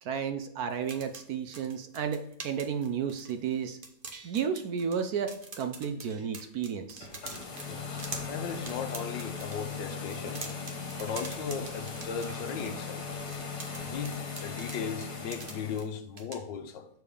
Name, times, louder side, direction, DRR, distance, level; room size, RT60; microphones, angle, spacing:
voice 1, 0.0-3.8 4.2-7.1, right 7 dB, 65° right, 1.0 m, -32 dB
sound 1, 0.7-3.5 3.8-5.0 5.3-9.6 10.0-12.7 13.3-15.9 16.2-16.4, right 3 dB, 35° right, 1.0 m, -44 dB
sound 2, 6.9-15.8, left 5 dB, 60° left, 2.0 m, -38 dB
voice 2, 7.7-10.4 11.0-13.1 13.8-16.9, left 6 dB, 80° left, 1.6 m, -37 dB
7.0 x 4.6 x 4.9 m
omnidirectional pair, 1.9 m